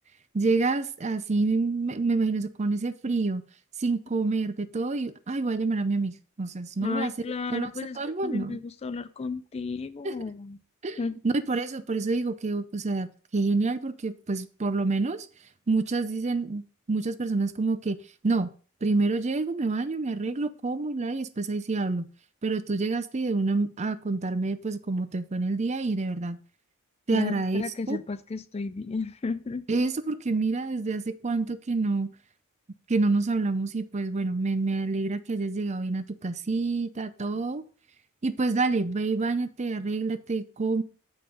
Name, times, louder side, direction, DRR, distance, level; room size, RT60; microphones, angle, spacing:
voice 1, 0.3-3.4 3.8-7.1 7.5-7.7 8.0-8.6 10.0-10.1 10.8-11.0 11.2-13.1 13.3-15.3 15.7-16.6 16.9-18.0 18.2-18.5 18.8-22.1 22.4-26.4 27.1-28.0 29.7-32.1 32.9-37.6 38.2-40.8, right 3 dB, 30° right, 0.5 m, -27 dB
voice 2, 6.8-10.6 11.0-11.2 27.1-29.8, left 4 dB, 30° left, 0.3 m, -33 dB
7.7 x 5.4 x 5.3 m
head